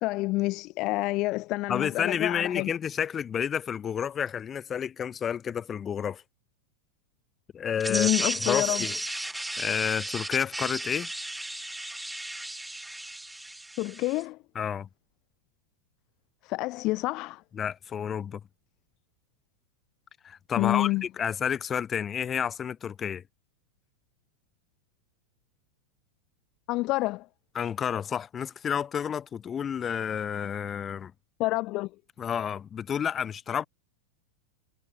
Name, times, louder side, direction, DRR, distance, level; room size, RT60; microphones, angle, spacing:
voice 1, 0.0-2.7 7.9-8.9 13.8-14.4 16.4-17.4 20.6-21.0 26.7-27.3 31.4-31.9, left 20 dB, 40° left, 0.9 m, -28 dB
voice 2, 1.7-6.2 7.5-8.9 9.6-11.1 14.5-14.9 17.5-18.4 20.2-23.2 27.5-31.1 32.2-33.6, left 8 dB, 25° left, 1.7 m, -30 dB
sound 1, 7.8-14.2, right 1 dB, 5° right, 0.9 m, -34 dB
figure-of-eight pair, 90°, 0 cm